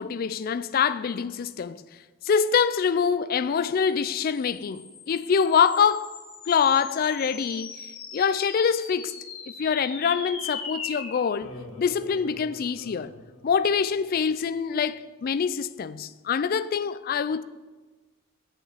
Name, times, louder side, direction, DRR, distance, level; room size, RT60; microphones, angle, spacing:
voice 1, 0.0-1.8 2.2-6.1 6.5-7.8 8.1-9.2 9.6-13.1 13.4-17.4, left 6 dB, 40° left, 0.3 m, -25 dB
sound 1, 4.0-14.6, left 4 dB, 70° left, 1.6 m, -41 dB
8.0 x 5.0 x 7.3 m
head